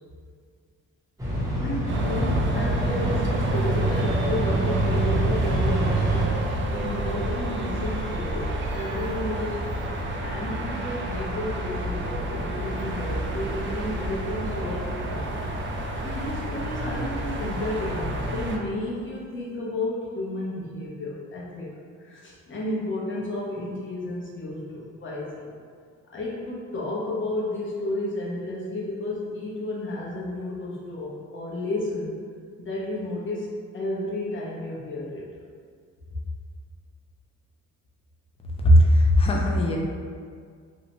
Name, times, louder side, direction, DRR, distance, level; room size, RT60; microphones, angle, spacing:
sound 1, 1.2-6.3, right 1 dB, 10° right, 0.8 m, -26 dB
voice 1, 1.5-6.4 6.7-9.6 10.2-15.5 16.0-21.7 22.0-25.5 26.1-32.1 32.6-35.2 36.1-36.2, left 1 dB, 40° left, -5 dB, 0.8 m, -32 dB
sound 2, 1.9-18.6, right 1 dB, 40° right, 0.4 m, -29 dB
voice 2, 38.6-39.8, equal, 20° left, -2 dB, 0.4 m, -17 dB
2.7 x 2.1 x 2.9 m, 2.1 s
cardioid pair, 90°, 30 cm